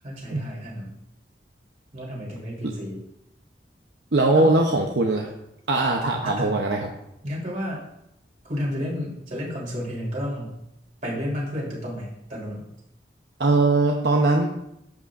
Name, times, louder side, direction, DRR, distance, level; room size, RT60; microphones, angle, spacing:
voice 1, 0.0-0.9 1.9-3.0 4.3-4.5 6.2-6.5 7.2-7.8 8.4-10.6 11.0-12.7, equal, 45° right, -5 dB, 3.6 m, -31 dB
voice 2, 4.1-5.3 5.7-6.9 13.4-14.5, right 2 dB, 75° right, 1 dB, 0.8 m, -20 dB
12.0 x 8.2 x 2.5 m, 0.84 s
head